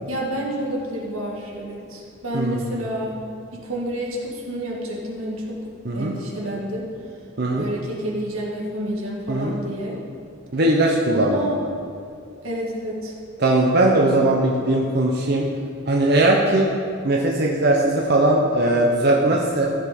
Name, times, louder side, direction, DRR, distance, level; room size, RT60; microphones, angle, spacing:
voice 1, 0.0-3.2 3.5-5.6 5.9-6.9 7.6-10.0 11.1-11.6 12.4-13.1, right 1 dB, 85° right, -2 dB, 1.9 m, -29 dB
voice 2, 2.3-2.7 5.8-6.1 7.4-7.7 9.3-9.6 10.5-11.5 13.4-15.5 15.9-16.7 17.0-19.7, right 1 dB, 50° right, -1 dB, 0.8 m, -19 dB
14.5 x 5.3 x 5.2 m, 2.5 s
head